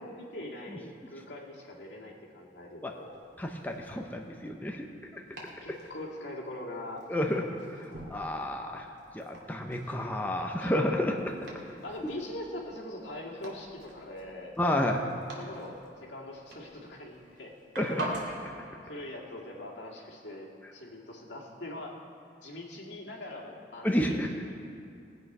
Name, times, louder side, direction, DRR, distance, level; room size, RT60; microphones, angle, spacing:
voice 1, 0.0-3.1 5.6-7.5 7.7-8.1 10.6-10.7 11.8-14.8 15.3-17.5 18.8-22.0 22.4-24.5, left 1 dB, 75° left, -2 dB, 2.1 m, -42 dB
Domestic sounds home sounds, 2.9-18.5, right 1 dB, 70° right, 2.6 m, -46 dB
voice 2, 3.4-4.8 5.1-5.2 7.1-7.4 8.1-8.9 9.1-11.3 14.6-15.0 17.8-18.1 23.8-24.3, left 1 dB, 10° left, 1 dB, 0.7 m, -30 dB
19.0 x 8.1 x 5.4 m, 2.5 s
head